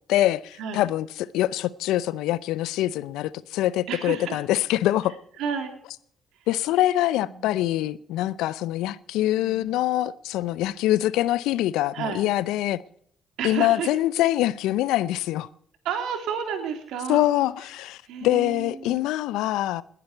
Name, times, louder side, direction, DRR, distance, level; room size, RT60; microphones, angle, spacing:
voice 1, 0.1-5.2 6.5-12.8 13.4-15.5 17.1-19.8, left 14 dB, 75° left, 0.6 m, -24 dB
voice 2, 3.9-4.4 5.4-5.7 6.4-6.5 7.2-7.6 9.4-9.7 11.9-12.2 13.4-13.9 15.8-17.3 18.1-19.0, right 7 dB, 75° right, 3.6 m, -31 dB
20.0 x 11.0 x 4.6 m
hypercardioid pair, 50°, 0 cm